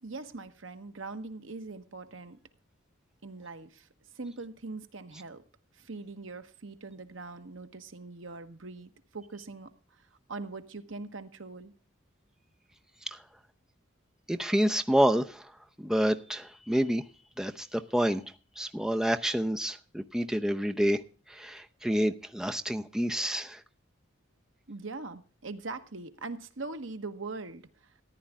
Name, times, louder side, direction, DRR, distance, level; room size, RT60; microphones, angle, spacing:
voice 1, 0.0-2.4 3.2-3.9 4.1-5.4 5.8-9.7 10.3-11.7 24.7-27.6, right 3 dB, 70° right, 1.2 m, -41 dB
voice 2, 14.3-15.5 15.8-17.0 17.4-18.2 18.6-21.0 21.3-23.6, equal, 5° right, 0.7 m, -28 dB
14.5 x 10.5 x 3.6 m
head